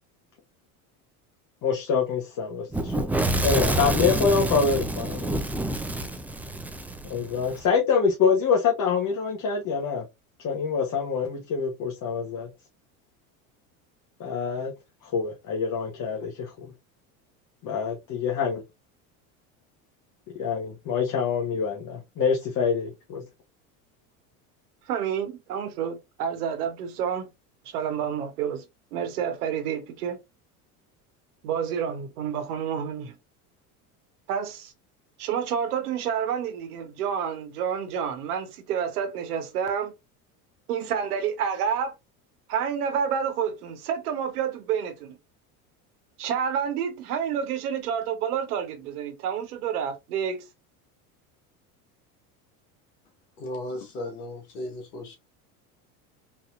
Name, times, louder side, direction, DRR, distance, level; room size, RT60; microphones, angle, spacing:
voice 1, 1.6-5.3 7.0-10.0 10.4-12.5 14.2-14.7 15.0-16.7 17.6-18.6 20.4-23.2, left 6 dB, 45° left, 1.1 m, -26 dB
Fire / Explosion, 2.7-7.6, right 1 dB, 5° right, 0.4 m, -27 dB
voice 2, 24.9-27.3 27.6-28.6 28.9-30.2 31.4-33.1 34.3-34.7 35.2-39.9 40.7-41.9 42.5-45.2 46.2-50.4, right 8 dB, 85° right, 1.1 m, -29 dB
voice 3, 53.4-55.2, left 1 dB, 90° left, 1.4 m, -35 dB
4.0 x 2.8 x 2.4 m
hypercardioid pair, 90°, 44 cm